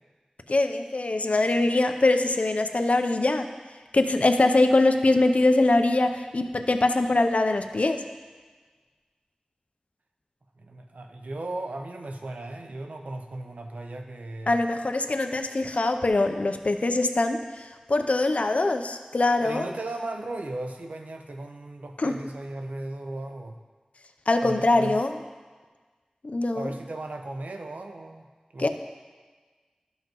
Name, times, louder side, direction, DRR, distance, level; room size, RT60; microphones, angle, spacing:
voice 1, 0.5-3.5 3.9-8.0 14.5-19.7 22.0-22.1 24.3-25.1 26.2-26.7 28.6-28.7, left 2 dB, 65° left, 7 dB, 0.6 m, -23 dB
voice 2, 10.6-14.6 19.4-23.6 24.4-25.0 26.5-28.3 28.5-28.7, right 2 dB, 90° right, 4 dB, 0.7 m, -36 dB
12.5 x 5.6 x 3.0 m, 1.4 s
wide cardioid pair, 45°, 2 cm